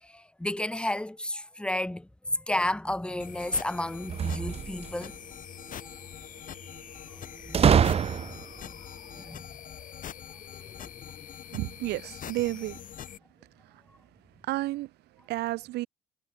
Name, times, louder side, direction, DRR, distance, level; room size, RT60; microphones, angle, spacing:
voice 1, 0.0-5.1 7.4-7.7 8.2-8.3 8.6-8.8 9.2-9.5 10.8-10.9, left 1 dB, 5° left, 2.0 m, -32 dB
sound 1, 3.2-13.2, left 9 dB, 50° left, 6.7 m, -44 dB
sound 2, 4.0-5.1 7.5-8.6, right 7 dB, 35° right, 0.9 m, -24 dB
voice 2, 11.5-12.8 14.5-14.9 15.3-15.9, right 17 dB, 80° right, 1.5 m, -31 dB
cardioid pair, 110°, 17 cm